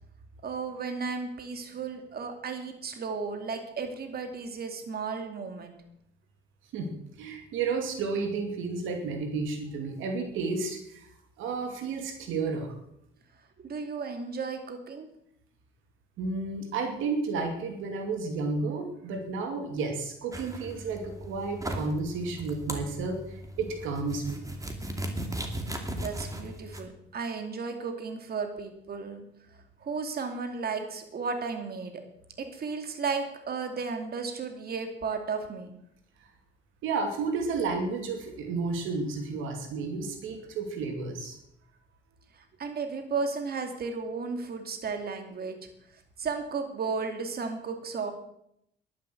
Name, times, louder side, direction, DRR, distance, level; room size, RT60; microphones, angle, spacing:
voice 1, 0.4-5.8 13.6-15.1 25.9-29.3 29.8-32.0 32.4-35.7 42.3-45.7 46.2-48.1, right 5 dB, 50° right, 6 dB, 2.5 m, -34 dB
voice 2, 7.2-11.1 11.4-12.7 16.2-24.4 36.8-41.4, right 4 dB, 90° right, 4 dB, 2.5 m, -32 dB
sound 1, 20.3-26.8, right 1 dB, 15° right, 2.5 m, -37 dB
11.0 x 10.5 x 7.9 m, 0.75 s
cardioid pair, 90°, 20 cm